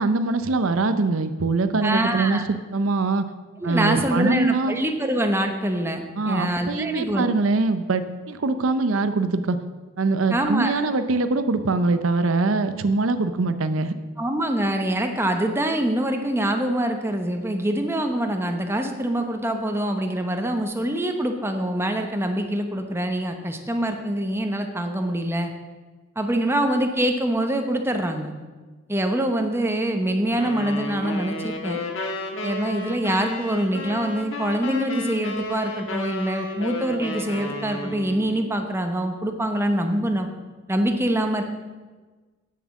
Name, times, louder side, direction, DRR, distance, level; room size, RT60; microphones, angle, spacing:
voice 1, 0.0-2.4 2.7-3.2 3.6-4.8 6.2-9.6 10.0-13.9, right 3 dB, 90° right, 10 dB, 0.6 m, -23 dB
voice 2, 1.8-2.4 3.6-7.3 10.3-10.7 14.2-25.5 26.2-28.3 28.9-31.8 32.4-40.3 40.7-41.4, right 1 dB, 10° right, 4 dB, 0.9 m, -24 dB
sound 1, 30.4-38.3, left 2 dB, 75° left, 1.5 m, -32 dB
8.5 x 7.3 x 7.1 m, 1.3 s
head